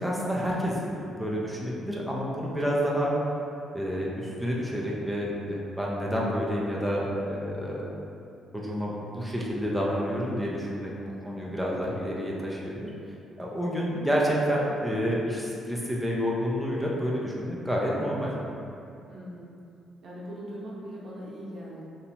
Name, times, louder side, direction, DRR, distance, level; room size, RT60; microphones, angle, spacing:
voice 1, 0.0-3.1 3.7-7.8 8.5-10.9 11.2-12.9 13.4-18.3, equal, ahead, -5 dB, 0.4 m, -29 dB
voice 2, 17.9-18.2 19.1-19.5 20.0-21.8, equal, 60° right, -6 dB, 0.6 m, -40 dB
2.7 x 2.0 x 2.7 m, 2.6 s
cardioid pair, 90°, 0 cm